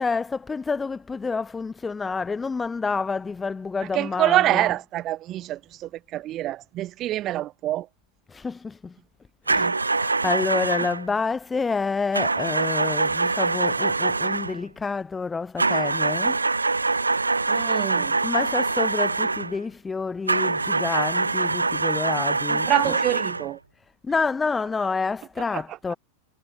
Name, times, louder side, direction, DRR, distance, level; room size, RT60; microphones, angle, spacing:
voice 1, 0.0-4.7 8.3-8.9 9.5-16.4 17.3-17.8 18.2-23.0 24.0-25.9, left 4 dB, 15° left, 0.6 m, -28 dB
voice 2, 3.9-7.9 9.5-9.8 17.5-18.2 22.5-23.6 25.5-25.6, right 14 dB, 35° right, 1.7 m, -26 dB
sound 1, 9.5-11.1 12.1-14.6 15.6-19.6 20.3-23.5, right 3 dB, 80° right, 0.8 m, -24 dB
figure-of-eight pair, 90°, 0 cm